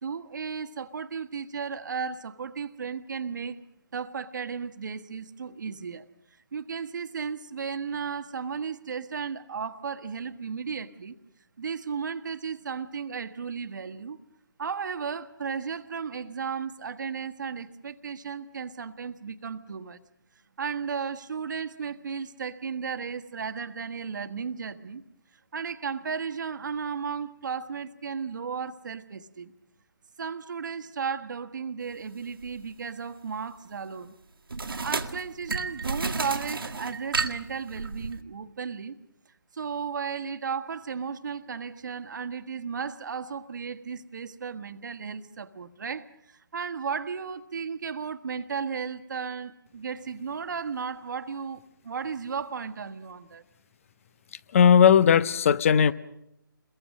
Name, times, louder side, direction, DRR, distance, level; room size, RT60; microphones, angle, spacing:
voice 1, 0.0-3.6 3.9-6.1 6.5-11.2 11.6-14.2 14.6-20.0 20.6-25.0 25.5-29.5 30.2-34.1 34.8-38.9 39.5-53.4, right 6 dB, 55° right, 1.4 m, -34 dB
sound 1, 32.4-32.6 34.5-38.2, right 4 dB, 85° right, 1.8 m, -32 dB
voice 2, 54.5-55.9, left 8 dB, 40° left, 0.8 m, -17 dB
29.5 x 22.0 x 6.5 m
figure-of-eight pair, 155°, 12 cm